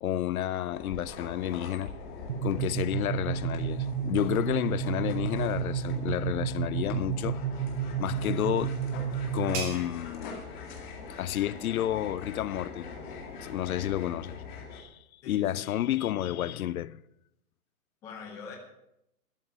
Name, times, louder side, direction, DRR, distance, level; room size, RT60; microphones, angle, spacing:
voice 1, 0.0-1.9 2.4-7.4 8.0-10.4 11.1-12.9 13.4-14.4 14.7-15.0 15.3-17.0, left 12 dB, 70° left, 0.6 m, -31 dB
sound 1, 0.7-14.8, left 5 dB, 30° left, 2.2 m, -42 dB
sound 2, 2.3-9.9, right 8 dB, 50° right, 0.6 m, -32 dB
sound 3, 8.2-13.6, right 5 dB, 20° right, 1.9 m, -46 dB
voice 2, 15.2-15.8 18.0-18.6, left 5 dB, 5° left, 0.6 m, -44 dB
12.5 x 7.2 x 8.4 m
hypercardioid pair, 165°, 45 cm